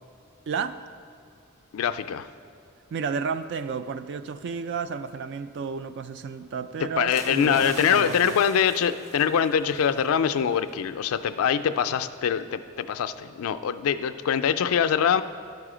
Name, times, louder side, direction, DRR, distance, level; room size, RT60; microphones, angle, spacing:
voice 1, 0.5-0.8 2.9-8.4, right 5 dB, 55° right, 12 dB, 0.3 m, -31 dB
voice 2, 1.7-2.3 6.8-15.2, left 8 dB, 85° left, 10 dB, 0.4 m, -24 dB
sound 1, 7.1-10.1 10.5-10.7, right 1 dB, 35° right, 0.9 m, -42 dB
12.0 x 4.8 x 4.9 m, 2.2 s
head